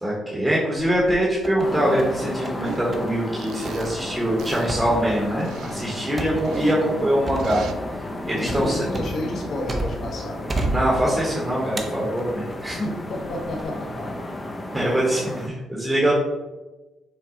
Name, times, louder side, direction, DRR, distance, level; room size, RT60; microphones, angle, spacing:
voice 1, 0.0-7.6 8.3-8.8 10.7-12.8 14.7-16.1, right 1 dB, 10° right, -5 dB, 1.2 m, -23 dB
sound 1, 0.7-1.7 2.0-2.6 2.9-3.1 3.6-10.1 10.5-11.3 11.8-12.7 13.2-13.6, right 2 dB, 30° right, 0.7 m, -31 dB
sound 2, 1.6-15.5, left 1 dB, 20° left, 0.6 m, -33 dB
sound 3, 2.6-2.9 3.4-4.0 4.4-4.7 5.4-6.8 7.4-7.7, right 5 dB, 75° right, 0.4 m, -34 dB
voice 2, 8.3-10.4 12.7-14.2, left 1 dB, 60° left, 0 dB, 1.0 m, -30 dB
5.9 x 2.3 x 3.8 m, 1.1 s
cardioid pair, 90°, 0 cm